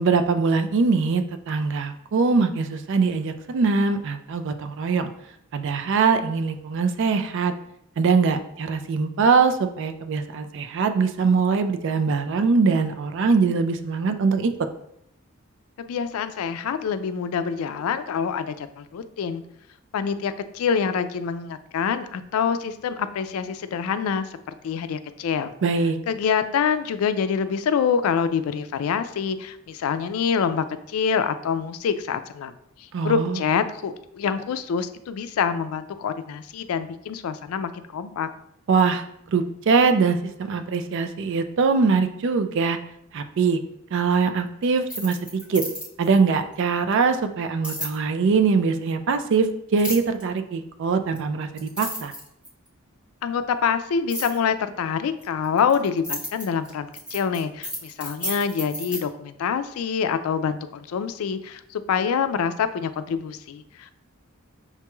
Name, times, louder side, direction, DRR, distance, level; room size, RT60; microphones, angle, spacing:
voice 1, 0.0-5.1 5.5-7.5 8.0-14.5 25.6-26.0 32.9-33.4 38.7-39.0 39.3-42.8 43.1-43.6 43.9-45.2 45.5-45.6 46.0-52.1, right 4 dB, 60° right, 8 dB, 0.4 m, -22 dB
voice 2, 15.8-19.4 19.9-24.3 24.6-25.5 26.1-32.5 33.0-38.3 53.2-63.9, left 6 dB, 90° left, 11 dB, 0.3 m, -26 dB
sound 1, 44.8-46.1 47.6-48.0 49.8-50.2 51.2-51.3 51.6-52.7 54.1-54.4 55.2-59.0, equal, 5° right, 0.8 m, -33 dB
5.7 x 3.0 x 2.3 m, 0.74 s
head